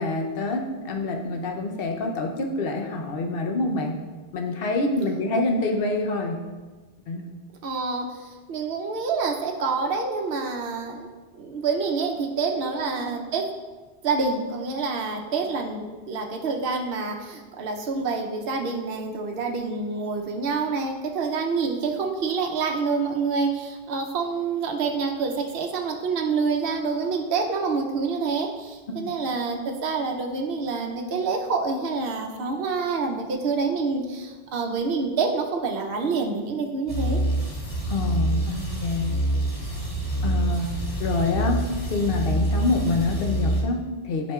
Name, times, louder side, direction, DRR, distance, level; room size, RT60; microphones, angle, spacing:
voice 1, 0.0-4.0 4.3-6.4 7.1-7.3 13.0-13.1 15.8-15.9 28.9-29.1 37.9-39.2 40.2-40.7 41.0-44.3, left 2 dB, 65° left, 3 dB, 0.9 m, -26 dB
voice 2, 7.6-11.1 11.4-13.5 14.0-37.2, right 4 dB, 70° right, 1 dB, 0.9 m, -27 dB
sound 1, 36.9-43.6, right 1 dB, 35° left, 1.4 m, -26 dB
9.3 x 5.1 x 2.3 m, 1.3 s
omnidirectional pair, 1.1 m